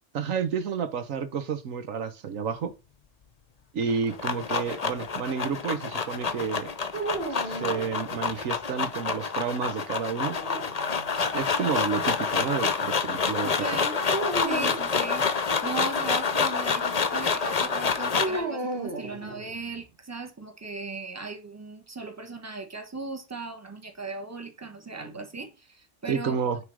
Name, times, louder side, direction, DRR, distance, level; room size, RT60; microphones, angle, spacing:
voice 1, 0.1-2.7 3.7-6.7 7.3-10.4 11.3-13.5 26.1-26.6, right 6 dB, 90° right, 1.4 m, -30 dB
sound 1, 3.8-18.4, left 5 dB, 35° left, 0.8 m, -28 dB
sound 2, 6.9-8.5 10.1-11.3 14.1-14.9 18.1-19.8, right 2 dB, 50° right, 2.0 m, -34 dB
voice 2, 13.4-14.0 14.4-26.6, right 3 dB, 15° right, 1.3 m, -38 dB
9.7 x 3.8 x 4.7 m
omnidirectional pair, 1.3 m